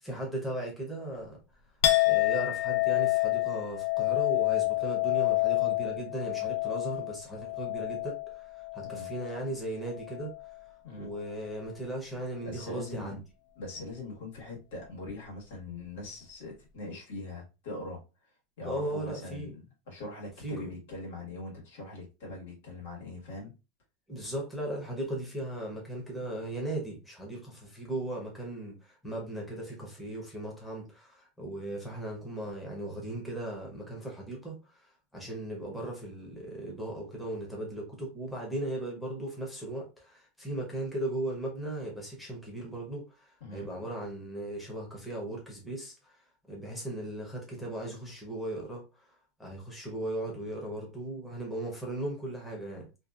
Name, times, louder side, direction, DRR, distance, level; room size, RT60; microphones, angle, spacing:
voice 1, 0.0-1.4 2.0-10.3 11.0-13.2 18.6-19.5 20.4-20.7 24.1-46.2 46.5-49.1 49.4-52.9, right 1 dB, 5° left, 0.7 m, -37 dB
Chink clink, 1.8-9.5 9.9-10.5, left 18 dB, 60° left, 0.3 m, -28 dB
voice 2, 12.4-13.2 13.5-18.0 18.6-23.5 43.4-43.7, left 2 dB, 90° left, 1.3 m, -42 dB
2.5 x 2.3 x 2.3 m
supercardioid pair, 170°, 0 cm